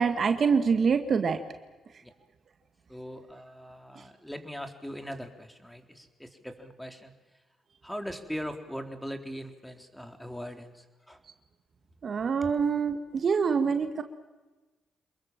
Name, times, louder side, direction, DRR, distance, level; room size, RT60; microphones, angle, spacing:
voice 1, 0.0-1.4 12.0-14.0, right 5 dB, 55° right, 7 dB, 1.9 m, -25 dB
voice 2, 2.9-7.1 7.8-11.2, equal, 5° left, 5 dB, 4.0 m, -40 dB
28.0 x 22.0 x 7.5 m, 1.2 s
hypercardioid pair, 50°, 0 cm